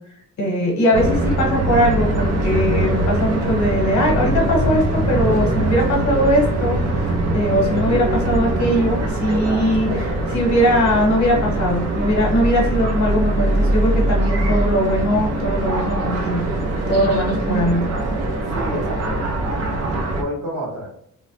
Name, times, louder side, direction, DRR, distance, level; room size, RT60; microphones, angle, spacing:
voice 1, 0.4-7.1 7.3-16.4 16.9-17.8, equal, 60° left, 0 dB, 0.9 m, -20 dB
sound 1, 0.9-20.2, right 1 dB, 50° right, 0.5 m, -22 dB
voice 2, 9.4-10.1 17.3-17.4 18.5-19.3 20.1-20.9, equal, 75° right, -3 dB, 1.4 m, -30 dB
3.0 x 2.0 x 2.7 m, 0.69 s
wide cardioid pair, 155°, 33 cm